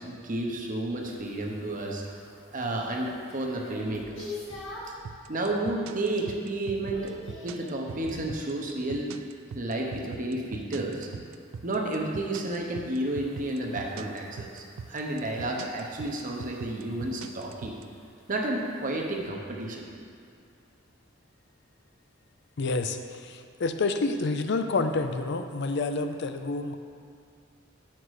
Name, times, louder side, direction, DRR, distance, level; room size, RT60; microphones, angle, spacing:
voice 1, 0.0-2.0 2.4-4.3 5.3-7.1 7.4-9.2 9.5-11.2 11.6-17.8 18.3-19.9, right 1 dB, 45° right, 0 dB, 0.9 m, -31 dB
sound 1, 1.0-5.1 5.6-6.0 6.3-8.4 10.8-19.2, left 2 dB, 80° left, 2.0 m, -47 dB
sound 2, 5.0-17.8, right 6 dB, 90° right, 0.3 m, -40 dB
voice 2, 22.6-26.8, left 3 dB, 60° left, 8 dB, 0.5 m, -28 dB
7.9 x 6.0 x 4.8 m, 2.3 s
head